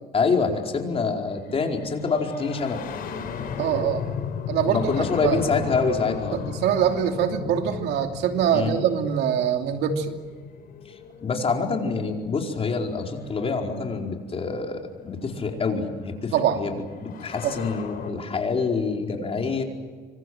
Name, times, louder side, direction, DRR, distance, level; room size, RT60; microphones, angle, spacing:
voice 1, 0.1-2.8 4.6-6.4 8.5-8.8 11.2-19.6, left 4 dB, 35° left, 2 dB, 4.7 m, -26 dB
sound 1, 1.4-12.0 13.2-13.3 14.4-18.1, left 7 dB, 60° left, 4.2 m, -36 dB
voice 2, 3.6-4.0 4.5-5.4 6.3-10.2 16.3-16.6 17.4-17.7, right 8 dB, 80° right, 4 dB, 2.9 m, -24 dB
25.5 x 25.5 x 7.9 m, 1.5 s
cardioid pair, 110°, 17 cm